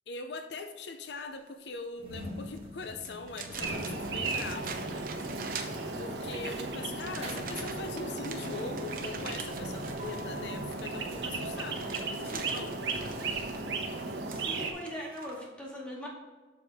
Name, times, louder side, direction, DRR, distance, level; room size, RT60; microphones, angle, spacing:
voice 1, 0.1-4.9 6.0-12.8, left 3 dB, 75° left, 7 dB, 0.6 m, -41 dB
sound 1, 2.0-12.1, equal, 35° right, 1.6 m, -46 dB
sound 2, 2.5-2.6 3.0-6.3 6.9-15.4, right 5 dB, 50° right, 0.9 m, -45 dB
sound 3, 3.6-14.7, right 3 dB, 80° right, 1.1 m, -36 dB
voice 2, 14.2-16.1, equal, 5° left, -4 dB, 2.2 m, -40 dB
7.6 x 6.9 x 3.5 m, 1.3 s
head